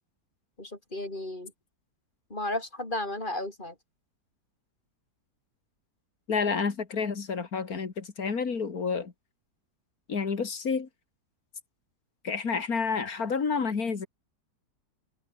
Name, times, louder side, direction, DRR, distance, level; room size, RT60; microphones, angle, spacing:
voice 1, 0.6-1.5 2.3-3.7, left 1 dB, 30° left, 6.5 m, -34 dB
voice 2, 6.3-9.1 10.1-10.9 12.2-14.1, left 5 dB, 65° left, 2.8 m, -29 dB
omnidirectional pair, 1.7 m